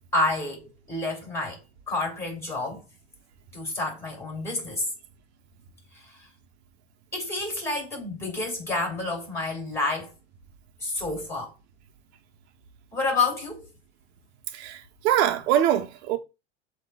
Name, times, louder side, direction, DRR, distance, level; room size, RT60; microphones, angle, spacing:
voice 1, 0.1-1.6 1.9-2.8 3.5-4.8 7.1-10.1 10.8-11.5 12.9-13.7, left 2 dB, 10° left, 2.9 m, -29 dB
voice 2, 14.5-16.2, right 11 dB, 70° right, 0.9 m, -23 dB
7.8 x 3.0 x 2.3 m
supercardioid pair, 120°, 34 cm